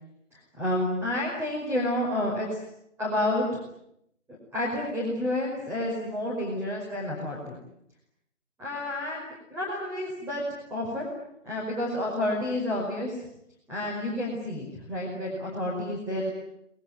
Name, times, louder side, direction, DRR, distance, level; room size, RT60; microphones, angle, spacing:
voice 1, 0.3-2.6 3.0-3.6 4.3-7.6 8.6-10.4 10.7-11.1 11.4-13.2 13.7-16.3, left 1 dB, 5° right, -4 dB, 5.1 m, -30 dB
27.5 x 21.0 x 9.7 m, 0.76 s
figure-of-eight pair, 150°, 37 cm